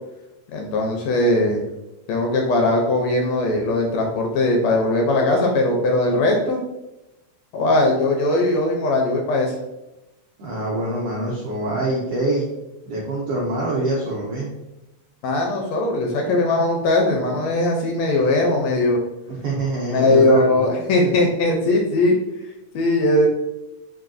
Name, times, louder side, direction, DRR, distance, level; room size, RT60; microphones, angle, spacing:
voice 1, 0.5-1.6 2.1-6.6 7.5-9.5 15.2-19.0 19.9-22.1 22.7-23.3, left 2 dB, 80° left, 1 dB, 1.6 m, -19 dB
voice 2, 10.4-12.5 12.9-14.5 19.3-20.7 21.0-21.1, right 2 dB, 85° right, -4 dB, 1.2 m, -25 dB
4.8 x 2.7 x 2.5 m, 0.95 s
omnidirectional pair, 3.4 m